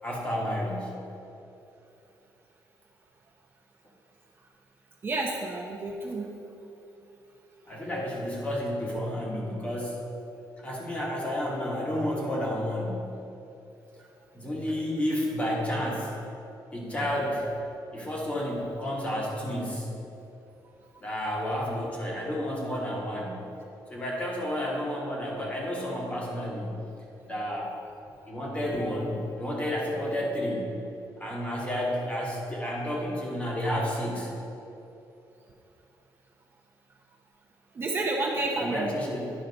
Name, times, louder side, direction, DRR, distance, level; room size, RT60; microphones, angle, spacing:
voice 1, 0.0-1.0 7.7-10.1 10.6-13.1 14.3-16.1 16.7-17.5 17.9-19.9 21.0-23.4 23.9-26.8 27.3-27.7 28.3-30.7 31.2-34.3 38.6-39.3, equal, 15° left, -3 dB, 1.2 m, -31 dB
voice 2, 5.0-6.3 17.0-17.5 37.7-38.9, right 2 dB, 30° right, -1 dB, 0.7 m, -30 dB
10.0 x 5.6 x 4.0 m, 2.9 s
cardioid pair, 175°, 7 cm